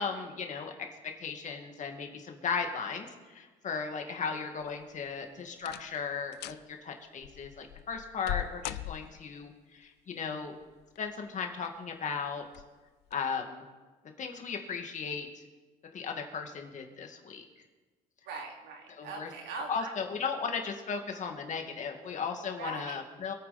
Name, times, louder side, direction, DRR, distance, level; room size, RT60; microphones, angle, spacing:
voice 1, 0.0-10.5 11.0-12.5 13.1-13.7 14.2-15.4 15.9-17.4 18.9-19.3 19.7-23.3, left 5 dB, 45° left, 3 dB, 2.2 m, -36 dB
sound 1, 4.6-5.1 5.6-6.0 6.3-6.7 7.2-9.4 10.6-11.2 11.7-11.8 12.5-12.7 13.1-13.2, left 14 dB, 80° left, 0.5 m, -40 dB
voice 2, 18.3-19.9 22.6-23.0, right 4 dB, 85° right, 1 dB, 3.0 m, -41 dB
25.5 x 9.1 x 4.3 m, 1.3 s
cardioid pair, 110°, 17 cm